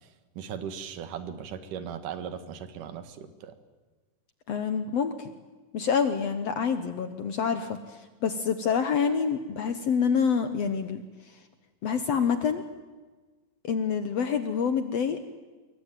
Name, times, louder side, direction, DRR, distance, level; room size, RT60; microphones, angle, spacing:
voice 1, 0.4-3.5, right 8 dB, 75° right, 10 dB, 3.1 m, -38 dB
voice 2, 4.5-5.3 5.7-11.4 11.8-12.6 13.6-15.2, left 6 dB, 60° left, 9 dB, 1.9 m, -27 dB
26.5 x 23.5 x 9.2 m, 1.3 s
omnidirectional pair, 3.8 m